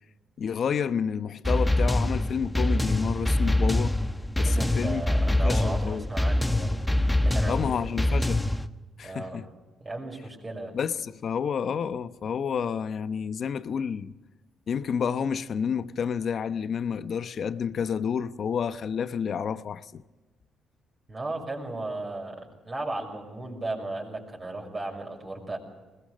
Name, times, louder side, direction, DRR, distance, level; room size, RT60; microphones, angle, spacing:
voice 1, 0.4-4.0 4.4-6.1 7.5-8.5 9.0-9.5 10.7-14.1 14.7-20.0, left 7 dB, 55° left, 0.9 m, -30 dB
sound 1, 1.5-8.7, left 1 dB, 5° left, 1.2 m, -25 dB
voice 2, 4.4-6.8 7.2-7.7 9.0-9.5 9.8-10.7 21.1-25.6, right 2 dB, 30° right, 6.3 m, -35 dB
21.5 x 20.0 x 6.5 m
cardioid pair, 90°, 0 cm